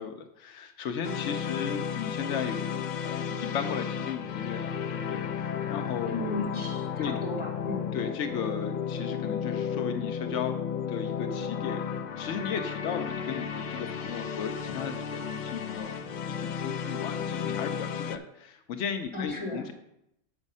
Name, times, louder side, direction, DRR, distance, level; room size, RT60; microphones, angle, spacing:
voice 1, 0.0-6.4 7.0-7.1 7.9-10.6 10.9-19.7, left 7 dB, 80° left, 6 dB, 1.0 m, -36 dB
sound 1, 1.0-18.2, left 7 dB, 55° left, 0.5 m, -33 dB
voice 2, 6.1-7.9 19.1-19.7, left 2 dB, 25° left, -2 dB, 2.0 m, -35 dB
7.2 x 6.3 x 5.3 m, 0.80 s
omnidirectional pair, 1.2 m